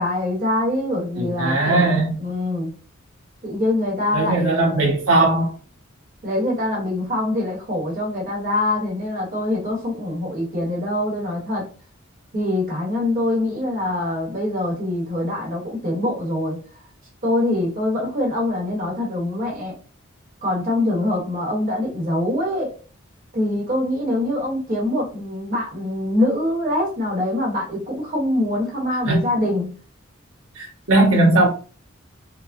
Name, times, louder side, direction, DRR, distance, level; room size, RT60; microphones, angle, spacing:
voice 1, 0.0-1.9 2.2-2.7 3.4-4.8 6.2-11.6 12.3-16.6 17.2-19.7 20.4-22.7 23.3-29.7, left 1 dB, 45° right, -3 dB, 1.1 m, -24 dB
voice 2, 1.2-2.1 4.1-5.5 29.0-29.2 30.5-31.5, right 2 dB, 80° right, -2 dB, 1.4 m, -18 dB
4.7 x 2.0 x 2.6 m, 0.37 s
head